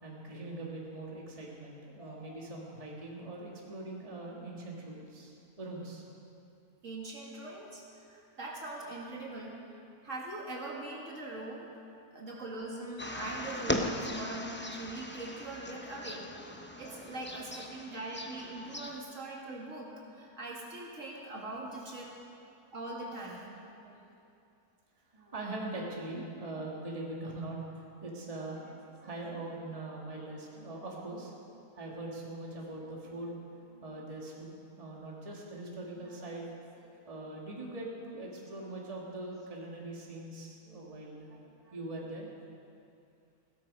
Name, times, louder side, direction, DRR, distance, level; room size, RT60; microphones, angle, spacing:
voice 1, 0.0-6.0 16.8-17.5 20.1-20.2 23.7-24.1 25.1-27.6 28.0-42.3, right 2 dB, 25° right, -3 dB, 1.9 m, -42 dB
voice 2, 6.8-7.8 8.1-9.5 10.0-11.7 12.1-16.2 16.8-19.9 20.2-22.1 22.7-23.6, right 2 dB, 55° right, -3 dB, 2.3 m, -41 dB
sound 1, 13.0-19.0, left 1 dB, 20° left, 0.3 m, -39 dB
17.0 x 13.0 x 5.4 m, 2.6 s
omnidirectional pair, 1.6 m